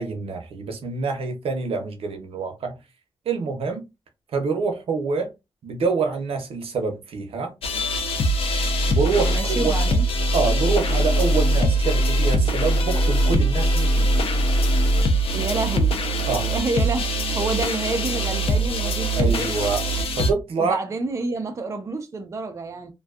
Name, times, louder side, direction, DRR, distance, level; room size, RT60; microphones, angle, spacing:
voice 1, 0.0-2.8 3.3-3.8 4.3-5.3 5.6-7.5 8.9-9.7 10.3-14.2 16.3-16.5 19.1-19.8 20.2-20.8, right 4 dB, 80° right, 0.6 m, -26 dB
sound 1, 7.6-20.3, right 1 dB, 80° left, 0.5 m, -22 dB
voice 2, 9.3-10.0 15.3-16.1 16.4-19.7 20.6-22.9, right 3 dB, 30° right, 0.4 m, -29 dB
2.6 x 2.2 x 2.3 m
wide cardioid pair, 125°, 10 cm